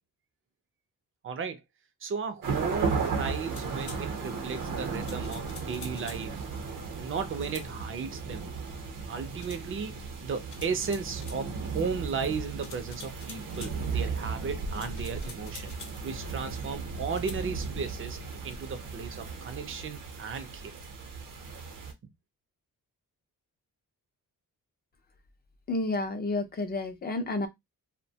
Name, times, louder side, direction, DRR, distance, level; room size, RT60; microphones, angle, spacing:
voice 1, 1.2-1.6 2.0-6.5 7.0-8.4 9.1-15.7 16.0-18.2 18.4-20.8, right 5 dB, 40° right, 0.5 m, -35 dB
sound 1, 2.4-21.9, right 4 dB, 70° right, 0.7 m, -35 dB
sound 2, 3.5-4.0 5.0-6.3 7.3-7.7 9.4-9.6 10.5-11.4 12.6-13.8 14.7-16.0 17.1-17.4, left 5 dB, 60° left, 0.7 m, -47 dB
voice 2, 25.7-27.5, left 2 dB, 30° left, 0.4 m, -30 dB
2.6 x 2.1 x 2.7 m
wide cardioid pair, 180°, 34 cm